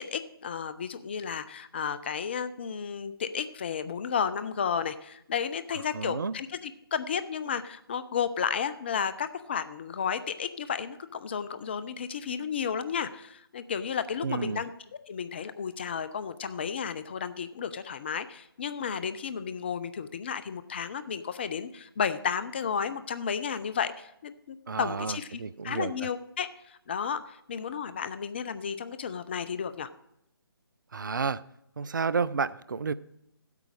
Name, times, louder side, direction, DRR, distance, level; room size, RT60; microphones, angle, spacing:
voice 1, 0.0-14.7 15.1-29.9, left 7 dB, 25° left, 12 dB, 0.5 m, -33 dB
voice 2, 5.9-6.4 14.2-14.6 24.7-26.1 30.9-31.4 31.8-32.9, right 5 dB, 55° right, 18 dB, 0.4 m, -31 dB
14.5 x 8.3 x 5.0 m, 0.80 s
figure-of-eight pair, 145°, 13 cm